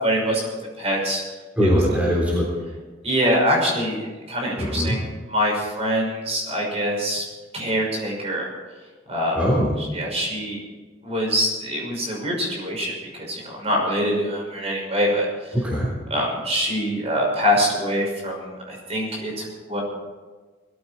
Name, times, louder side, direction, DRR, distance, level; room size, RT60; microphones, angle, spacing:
voice 1, 0.0-1.2 1.6-1.8 3.0-5.0 5.3-7.2 7.5-8.5 9.1-9.4 9.8-10.6 11.0-15.3 16.1-19.8, equal, 35° right, -1 dB, 5.8 m, -24 dB
voice 2, 1.6-2.5 4.6-5.0 9.3-9.7 15.5-15.9, equal, 10° right, -5 dB, 3.6 m, -21 dB
20.5 x 14.5 x 4.4 m, 1.3 s
head